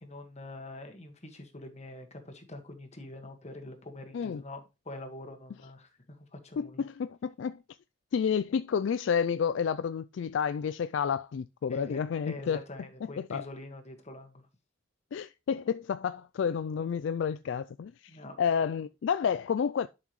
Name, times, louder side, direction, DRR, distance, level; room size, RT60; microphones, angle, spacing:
voice 1, 0.0-6.8 11.7-14.5 18.1-18.4, left 1 dB, 35° left, 1.6 m, -45 dB
voice 2, 6.6-7.6 8.1-12.6 13.0-13.5 15.1-19.9, left 7 dB, 65° left, 0.3 m, -30 dB
11.0 x 5.8 x 3.1 m
head